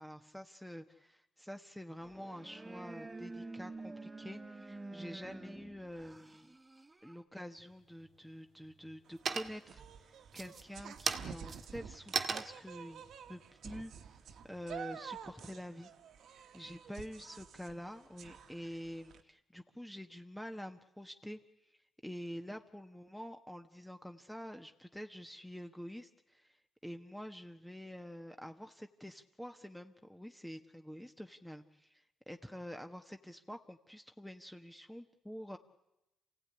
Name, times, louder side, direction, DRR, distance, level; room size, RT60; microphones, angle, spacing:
voice 1, 0.0-6.5 7.0-13.0 13.3-13.9 14.4-15.9 16.5-21.4 21.7-21.8 22.0-35.6, equal, 5° left, 6 dB, 1.4 m, -47 dB
sound 1, 2.0-7.2, right 2 dB, 20° right, 1.9 m, -48 dB
sound 2, 7.6-8.2 8.6-9.0 9.2-9.8 10.3-14.7, right 5 dB, 45° right, 1.8 m, -39 dB
sound 3, 9.1-19.2, right 7 dB, 70° right, 1.7 m, -50 dB
28.0 x 17.0 x 9.9 m, 0.92 s
cardioid pair, 90°, 0 cm